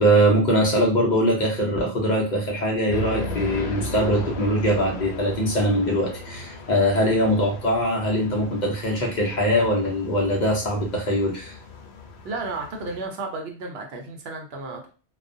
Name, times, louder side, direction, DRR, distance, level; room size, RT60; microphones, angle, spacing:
voice 1, 0.0-11.6 14.7-14.8, equal, 50° left, -1 dB, 0.7 m, -22 dB
sound 1, 2.9-13.0, left 1 dB, 75° left, 0.8 m, -36 dB
voice 2, 12.2-14.9, right 3 dB, 70° right, 3 dB, 0.8 m, -33 dB
2.4 x 2.1 x 2.5 m, 0.35 s
omnidirectional pair, 1.1 m